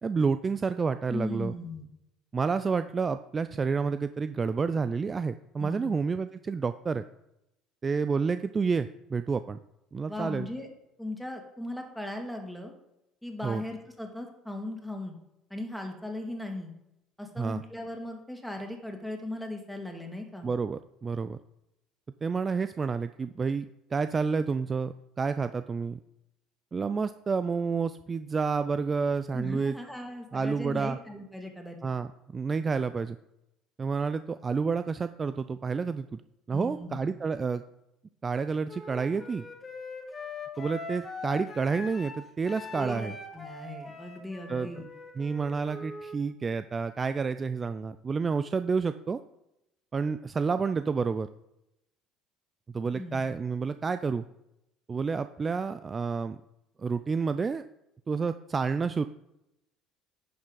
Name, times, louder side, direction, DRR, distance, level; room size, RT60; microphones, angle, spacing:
voice 1, 0.0-1.5 2.3-7.0 7.8-9.6 9.9-10.5 13.4-13.6 17.4-17.6 20.4-21.4 22.2-23.7 23.9-26.0 26.7-29.8 30.3-31.0 31.8-33.2 33.8-36.2 36.5-37.6 38.2-39.4 40.6-43.1 44.5-44.7 45.2-49.2 49.9-51.3 52.7-54.2 54.9-56.4 56.8-57.6 58.1-59.1, right 5 dB, 30° right, 12 dB, 0.4 m, -29 dB
voice 2, 1.1-1.9 5.6-5.9 10.1-10.7 11.0-12.7 13.2-15.1 15.5-16.7 17.2-20.5 29.3-31.8 36.5-37.1 42.7-44.9 52.9-53.3, left 1 dB, ahead, 3 dB, 2.2 m, -38 dB
Wind instrument woodwind instrument, 38.7-46.2, left 3 dB, 25° left, 2.1 m, -42 dB
10.5 x 6.4 x 3.9 m, 0.86 s
hypercardioid pair, 65°, 0 cm